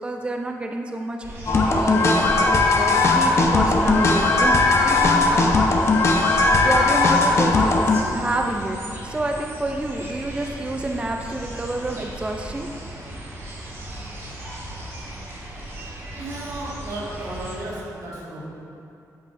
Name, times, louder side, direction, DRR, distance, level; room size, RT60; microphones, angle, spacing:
voice 1, 0.0-5.5 6.6-12.7, right 2 dB, 15° right, 3 dB, 0.5 m, -28 dB
sound 1, 1.2-17.6, right 1 dB, 45° right, 1.8 m, -35 dB
sound 2, 1.5-8.0, left 3 dB, 45° left, 0.8 m, -18 dB
voice 2, 16.1-18.4, right 1 dB, 85° right, -6 dB, 1.9 m, -34 dB
9.1 x 8.3 x 2.6 m, 2.6 s
cardioid pair, 95°, 6 cm